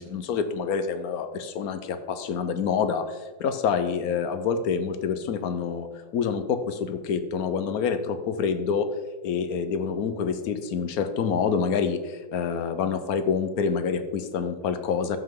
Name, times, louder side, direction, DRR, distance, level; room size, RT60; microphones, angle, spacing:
voice 1, 0.0-5.9 6.1-8.9 9.2-15.2, left 6 dB, 70° left, 10 dB, 1.2 m, -27 dB
13.0 x 5.8 x 3.7 m, 1.3 s
omnidirectional pair, 1.6 m